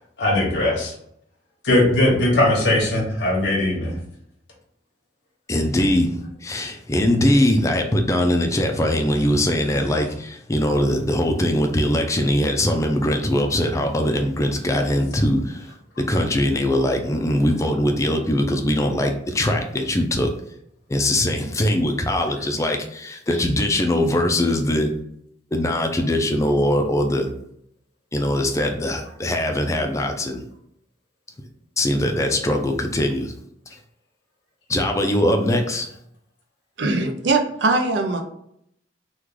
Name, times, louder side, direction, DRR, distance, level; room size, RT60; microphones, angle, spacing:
voice 1, 0.2-0.9 1.6-4.0, left 1 dB, 90° left, -2 dB, 1.0 m, -19 dB
voice 2, 5.5-15.7 16.0-20.3 20.9-24.9 25.5-27.3 28.1-30.4 31.8-33.3 34.7-35.9, left 1 dB, 15° left, 4 dB, 0.4 m, -21 dB
voice 3, 36.8-38.2, right 3 dB, 70° right, 5 dB, 0.5 m, -21 dB
3.0 x 2.3 x 3.7 m, 0.72 s
head